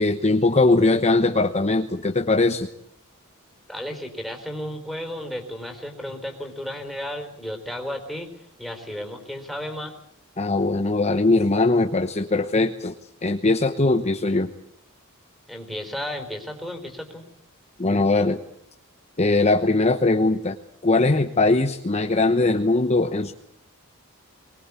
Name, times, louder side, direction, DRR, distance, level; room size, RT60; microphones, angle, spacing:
voice 1, 0.0-2.7 10.4-12.9 13.2-14.5 17.8-18.4 19.2-20.6 20.8-23.3, left 2 dB, 30° left, 6 dB, 1.0 m, -20 dB
voice 2, 3.7-8.3 8.6-9.9 15.5-17.2, equal, ahead, 3 dB, 4.1 m, -33 dB
23.0 x 20.5 x 8.4 m, 0.69 s
head